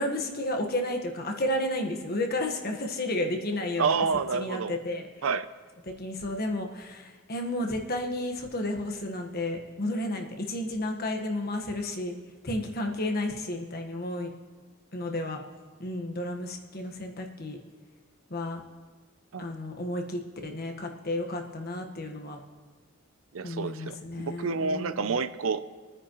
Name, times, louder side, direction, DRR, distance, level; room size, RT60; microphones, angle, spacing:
voice 1, 0.0-3.9 4.3-5.3 5.8-12.2 12.4-14.3 14.9-15.4 15.8-17.6 18.3-18.6 19.4-22.4 23.4-25.2, left 1 dB, 50° left, 3 dB, 1.4 m, -32 dB
voice 2, 3.8-4.8 5.2-5.5 19.3-19.5 23.3-25.8, right 5 dB, 85° right, 13 dB, 0.6 m, -29 dB
25.5 x 9.7 x 3.1 m, 1.4 s
head